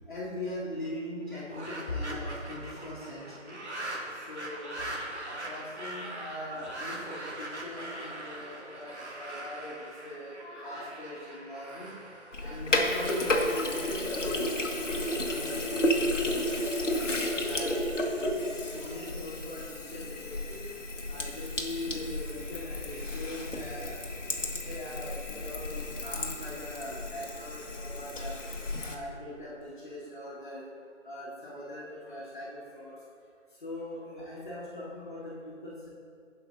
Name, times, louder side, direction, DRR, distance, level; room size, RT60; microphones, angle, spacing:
voice 1, 0.1-3.6 4.3-4.8 5.3-8.9 9.2-9.8 10.0-11.9 12.4-16.7 17.4-20.6 21.1-24.0 24.7-28.4 28.8-30.6 31.0-32.9 33.6-35.7, left 1 dB, 40° left, -7 dB, 2.1 m, -41 dB
sound 1, 1.2-14.4, right 1 dB, 60° right, 2.1 m, -42 dB
Sink (filling or washing), 12.3-28.9, left 1 dB, 70° left, 1.7 m, -32 dB
16.5 x 5.7 x 4.0 m, 2.4 s
figure-of-eight pair, 165°, 38 cm